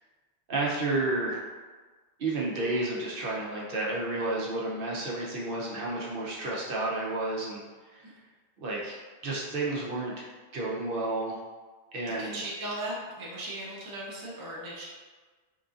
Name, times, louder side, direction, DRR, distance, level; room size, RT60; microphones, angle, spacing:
voice 1, 0.5-1.4 2.2-7.6 7.9-8.0 8.6-9.0 9.2-10.2 10.5-11.4 11.9-12.5, right 2 dB, 60° right, -4 dB, 0.8 m, -31 dB
voice 2, 12.2-14.8, right 1 dB, 25° right, -5 dB, 0.5 m, -37 dB
3.8 x 2.6 x 2.4 m, 1.4 s
omnidirectional pair, 1.2 m